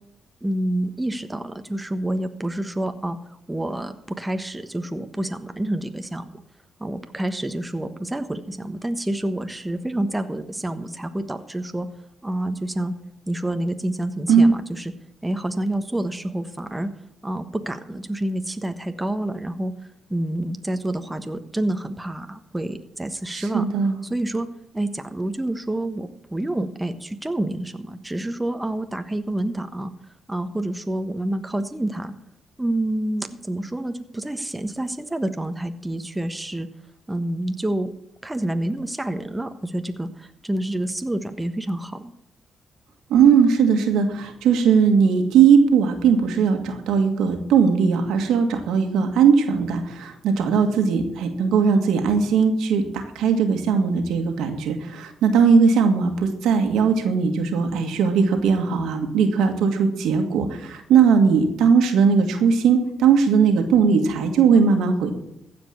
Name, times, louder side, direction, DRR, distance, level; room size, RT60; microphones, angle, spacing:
voice 1, 0.4-3.2 3.5-6.3 6.8-11.9 12.2-12.9 13.3-14.6 15.2-16.9 17.2-19.7 20.1-23.6 24.1-24.5 24.7-29.9 30.3-32.1 32.6-36.7 37.1-37.9 38.2-40.1 40.4-42.1, right 1 dB, 15° right, 7 dB, 1.3 m, -28 dB
voice 2, 23.3-24.0 43.1-65.1, right 6 dB, 80° right, 6 dB, 1.8 m, -19 dB
15.0 x 5.3 x 8.4 m, 0.78 s
supercardioid pair, 55°, 0 cm